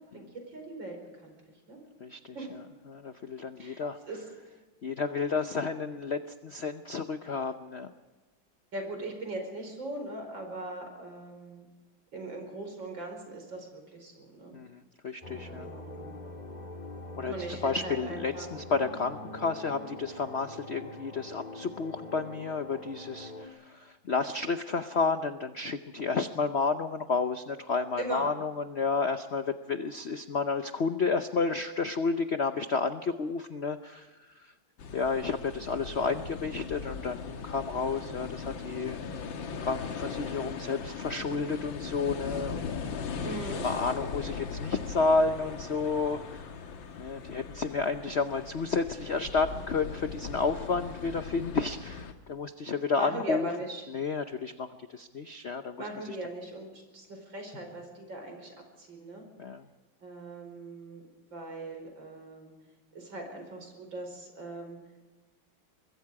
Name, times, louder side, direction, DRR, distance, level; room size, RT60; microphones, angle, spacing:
voice 1, 0.0-1.3 1.7-1.8 2.3-2.6 3.6-4.2 8.7-11.7 12.1-14.6 15.4-16.2 17.3-18.5 28.0-28.3 43.2-43.7 53.0-53.8 55.8-59.3 60.0-61.0 61.3-62.5 62.9-64.8, right 2 dB, 65° right, 3 dB, 5.6 m, -40 dB
voice 2, 2.0-2.4 2.9-4.0 4.8-7.9 14.5-15.7 17.2-34.5 34.9-39.3 39.6-42.8 43.5-46.4 47.0-53.5 53.9-56.2 59.4-59.7, left 4 dB, 55° left, 9 dB, 0.7 m, -31 dB
sound 1, 15.2-23.5, left 2 dB, 20° left, 2.0 m, -44 dB
sound 2, 34.8-52.1, left 6 dB, 70° left, 2.1 m, -39 dB
24.5 x 22.0 x 4.8 m, 1.2 s
omnidirectional pair, 2.2 m